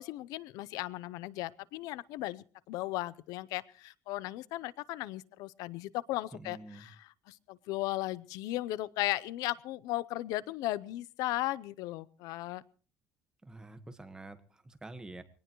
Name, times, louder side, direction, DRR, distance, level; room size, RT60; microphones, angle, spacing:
voice 1, 0.0-12.6, left 17 dB, 90° left, 20 dB, 0.7 m, -36 dB
voice 2, 6.3-6.9 13.4-15.2, right 2 dB, 10° right, 9 dB, 1.5 m, -47 dB
22.5 x 18.0 x 3.1 m, 0.38 s
cardioid pair, 145°, 6 cm